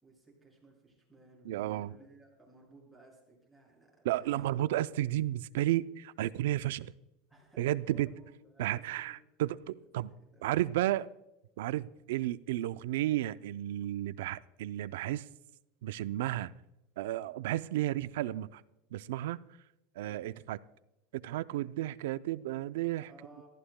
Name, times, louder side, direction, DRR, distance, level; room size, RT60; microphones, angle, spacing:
voice 1, 0.0-4.6 7.3-9.1 9.8-11.0 23.1-23.5, right 2 dB, ahead, 5.9 m, -59 dB
voice 2, 1.4-2.0 4.0-6.9 7.6-8.1 8.6-10.1 10.4-11.1 11.6-15.3 15.8-16.5 17.0-18.6 18.9-19.4 20.0-20.6 21.1-23.1, right 14 dB, 85° right, 0.4 m, -33 dB
26.5 x 14.5 x 2.2 m
supercardioid pair, 155°, 0 cm